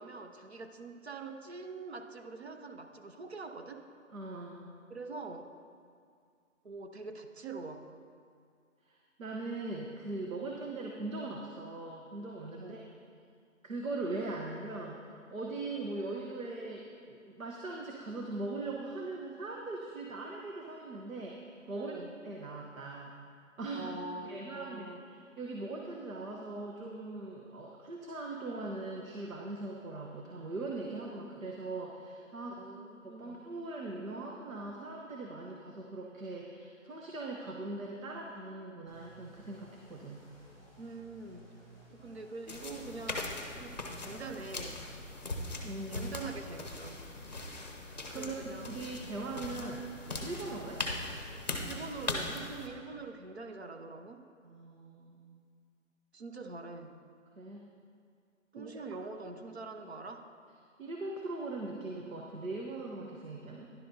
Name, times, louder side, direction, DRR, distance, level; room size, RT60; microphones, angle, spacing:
voice 1, 0.0-3.9 4.9-5.5 6.6-7.8 12.6-12.8 21.7-22.1 23.7-25.0 32.6-33.4 40.8-41.5 41.9-44.8 45.9-47.0 48.1-48.9 51.7-54.3 56.1-56.9 58.5-60.3, right 3 dB, 55° right, 6 dB, 0.7 m, -44 dB
voice 2, 4.1-4.7 8.8-12.9 13.6-15.0 15.3-21.9 22.2-23.1 23.6-23.9 24.2-32.6 33.0-40.3 45.6-46.2 47.8-49.8 50.2-50.8 54.4-55.4 57.4-57.7 58.5-58.8 60.8-63.7, right 2 dB, 80° right, -1 dB, 1.1 m, -40 dB
sound 1, 38.9-44.4, right 2 dB, 15° right, 2.2 m, -57 dB
sound 2, 42.5-52.7, left 2 dB, 35° left, 0.7 m, -40 dB
11.0 x 10.5 x 2.7 m, 2.2 s
hypercardioid pair, 180°, 40 cm